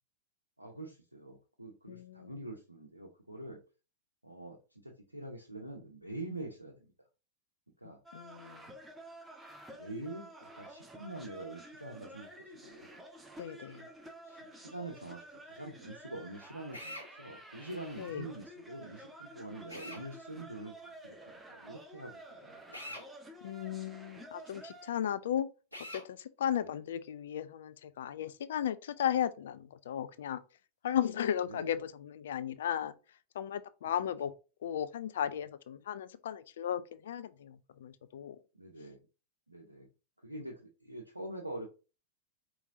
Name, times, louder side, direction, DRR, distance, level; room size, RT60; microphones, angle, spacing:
voice 1, 0.6-3.6 4.2-6.9 7.8-8.0 9.7-13.0 13.7-14.0 14.2-23.1 26.6-26.8 31.5-31.8 38.5-39.0 39.5-39.9 40.2-41.7, right 2 dB, 85° right, 0.7 m, -45 dB
voice 2, 1.9-2.3 8.1-8.6 13.4-13.9 18.0-18.3 23.4-25.5 25.9-30.4 30.8-32.9 33.3-34.3 34.6-38.4, left 10 dB, 60° left, 0.4 m, -35 dB
sound 1, 8.1-24.9, right 1 dB, 10° right, 0.8 m, -51 dB
Drill, 16.7-17.1 19.7-20.0 22.7-23.1 25.7-26.1, left 1 dB, 85° left, 1.4 m, -44 dB
4.9 x 3.1 x 2.6 m
figure-of-eight pair, 90°, 0 cm